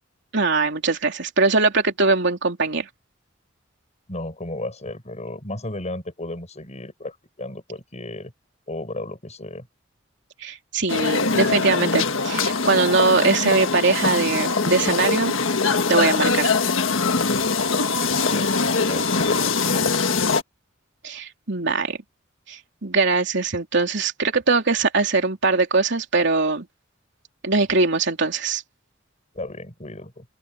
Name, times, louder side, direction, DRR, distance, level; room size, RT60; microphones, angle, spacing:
voice 1, 0.3-2.9 10.4-15.3 15.9-16.5 21.0-22.0 22.5-26.7 27.4-28.6, right 3 dB, 65° right, 3.3 m, -21 dB
voice 2, 4.1-8.3 8.7-9.7 18.0-20.3 29.3-30.3, left 2 dB, 35° left, 7.2 m, -34 dB
sound 1, 10.9-20.4, left 4 dB, 80° left, 1.6 m, -22 dB
open air
head